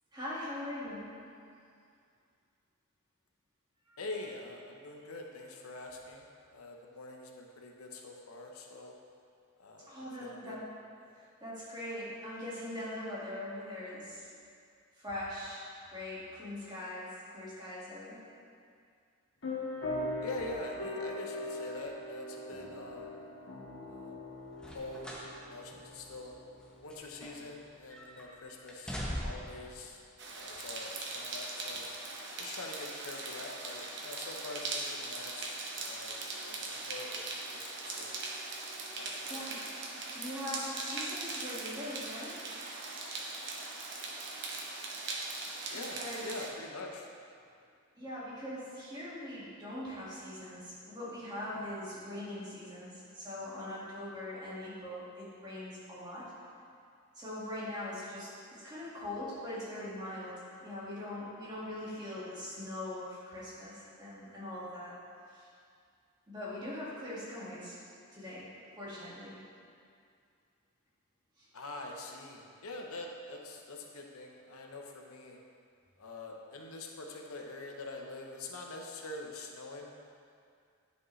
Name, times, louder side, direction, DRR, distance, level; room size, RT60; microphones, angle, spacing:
voice 1, 0.1-1.1 3.9-4.0 9.9-10.7 11.1-14.2 15.0-18.2 31.7-31.8 39.2-39.6 40.1-42.4 45.7-46.3 48.0-56.3 57.2-64.9 65.3-65.4 66.3-67.8 68.1-68.5 68.8-69.4 71.4-71.5, left 1 dB, 20° right, -9 dB, 1.8 m, -41 dB
voice 2, 4.0-6.3 6.5-8.9 9.6-10.6 11.0-11.1 20.2-23.1 23.9-24.2 24.7-25.1 25.5-26.3 26.8-30.0 30.3-31.9 32.4-36.1 36.4-38.1 39.0-39.4 45.7-47.1 71.5-75.4 76.0-79.9, left 2 dB, 85° left, 1 dB, 0.8 m, -45 dB
sound 1, 19.4-27.5, left 1 dB, 60° left, 1.4 m, -41 dB
sound 2, 24.5-25.3 25.7-25.8 26.6-27.6 27.9-28.3 28.7-29.6 30.5-30.6, equal, 5° left, 0.7 m, -41 dB
sound 3, 30.2-46.5, right 3 dB, 55° right, 0.8 m, -40 dB
9.8 x 5.2 x 3.2 m, 2.3 s
head